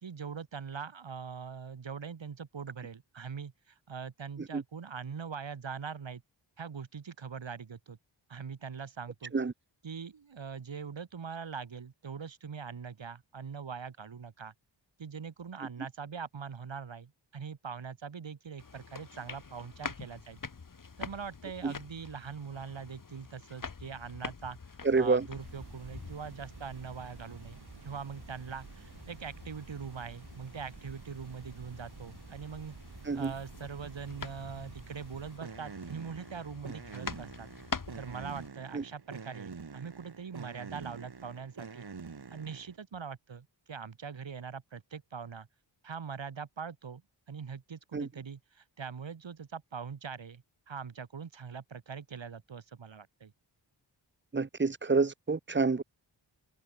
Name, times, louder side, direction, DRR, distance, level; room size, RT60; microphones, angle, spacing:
voice 1, 0.0-6.2 6.6-8.0 8.3-9.3 9.8-14.5 15.0-20.4 21.0-24.6 25.0-32.8 33.1-37.5 37.9-41.9 42.3-45.5 45.8-47.0 47.3-53.3, right 6 dB, 75° right, 2.9 m, -42 dB
sound 1, 18.6-38.5, left 5 dB, 45° left, 1.9 m, -46 dB
voice 2, 24.8-25.3 33.1-33.3 38.7-38.8 47.9-48.1 54.3-55.8, right 4 dB, 25° right, 0.8 m, -28 dB
sound 2, 25.4-42.8, right 5 dB, 55° right, 2.8 m, -48 dB
cardioid pair, 55°, 46 cm